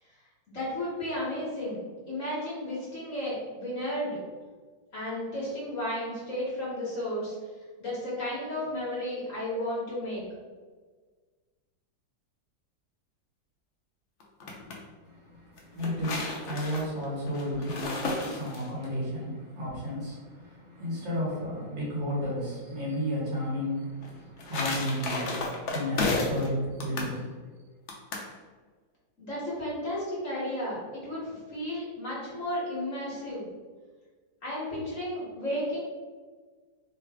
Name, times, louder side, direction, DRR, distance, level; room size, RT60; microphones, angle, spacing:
voice 1, 0.5-1.8 2.1-4.2 4.9-7.3 7.8-10.2 29.2-33.4 34.4-35.8, left 1 dB, 50° left, -7 dB, 1.3 m, -33 dB
sound 1, 14.2-14.8 15.6-18.9 24.0-26.5 26.8-27.1 27.9-28.3, left 3 dB, 75° left, 0.6 m, -33 dB
voice 2, 15.0-27.3, equal, 75° right, -6 dB, 2.0 m, -33 dB
3.9 x 2.3 x 3.4 m, 1.4 s
omnidirectional pair, 2.0 m